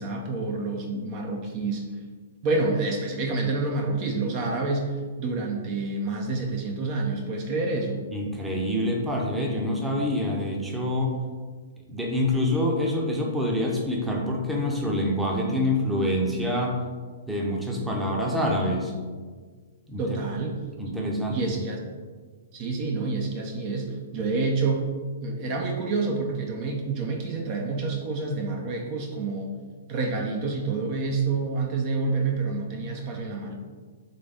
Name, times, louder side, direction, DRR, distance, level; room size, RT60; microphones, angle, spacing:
voice 1, 0.0-1.8 2.4-8.0 20.0-20.6 21.3-21.8 22.5-24.9 25.2-29.5 29.9-33.5, right 3 dB, 40° right, 2 dB, 0.6 m, -28 dB
voice 2, 8.1-11.2 11.9-16.8 17.3-18.9 19.9-20.0 20.8-21.6, left 1 dB, 5° right, -2 dB, 0.7 m, -26 dB
3.9 x 3.2 x 3.5 m, 1.5 s
hypercardioid pair, 120°, 0 cm